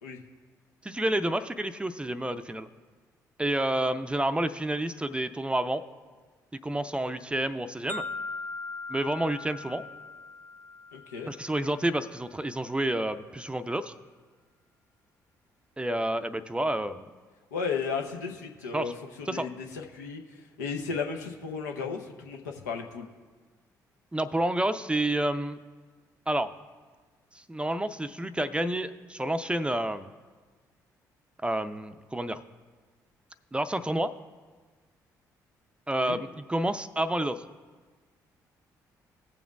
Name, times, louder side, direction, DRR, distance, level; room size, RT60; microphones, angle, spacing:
voice 1, 0.8-2.7 3.4-5.8 6.6-8.0 8.9-9.8 11.3-13.9 15.8-17.1 18.7-18.9 19.3-19.5 24.1-25.6 26.3-26.5 27.5-30.1 31.4-32.4 33.5-34.1 35.9-37.4, right 1 dB, 10° right, 11 dB, 0.5 m, -29 dB
sound 1, 7.9-11.9, left 3 dB, 20° left, 0.8 m, -40 dB
voice 2, 10.9-11.3 17.5-18.9 19.2-23.1 36.0-36.2, left 5 dB, 80° left, 3 dB, 0.7 m, -34 dB
17.5 x 7.1 x 2.3 m, 1.4 s
figure-of-eight pair, 45°, 9 cm